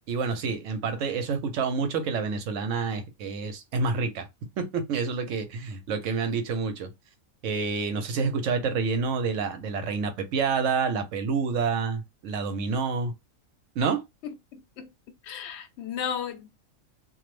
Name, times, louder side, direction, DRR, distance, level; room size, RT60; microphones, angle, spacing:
voice 1, 0.1-4.3 4.6-6.9 7.4-13.1 13.8-14.0, right 5 dB, 70° right, 0.9 m, -28 dB
voice 2, 14.2-14.9 15.2-16.5, left 8 dB, 60° left, 0.8 m, -35 dB
2.5 x 2.0 x 3.0 m
omnidirectional pair, 1.4 m